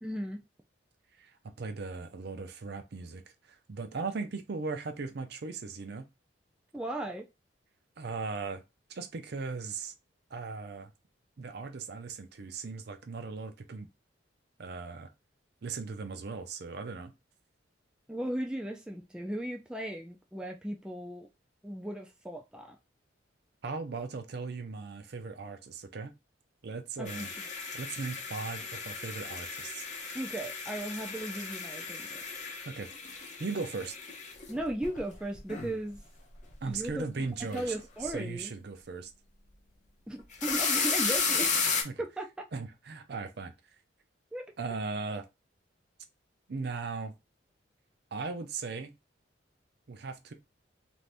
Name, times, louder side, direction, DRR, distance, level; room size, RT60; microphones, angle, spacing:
voice 1, 0.0-0.4 6.7-7.2 18.1-21.3 21.6-22.8 27.0-27.4 30.1-32.2 34.5-36.0 36.7-37.1 37.5-38.5 40.1-41.6 42.0-42.3 44.3-44.5, right 1 dB, 5° right, 0.3 m, -36 dB
voice 2, 1.2-3.2 3.5-6.1 8.0-8.6 8.9-9.9 10.3-10.9 11.4-13.9 14.6-15.1 15.6-17.1 23.6-26.1 26.6-27.3 27.7-29.9 32.4-33.9 36.6-37.7 38.0-39.1 41.8-41.9 42.5-43.5 44.6-45.2 46.5-47.1 48.1-48.9 49.9-50.3, right 4 dB, 55° right, 0.5 m, -38 dB
sound 1, 27.1-36.0 36.4-36.9 37.2-37.8 38.0-38.1 40.2-41.8, left 5 dB, 40° left, 0.8 m, -34 dB
2.6 x 2.6 x 3.3 m
head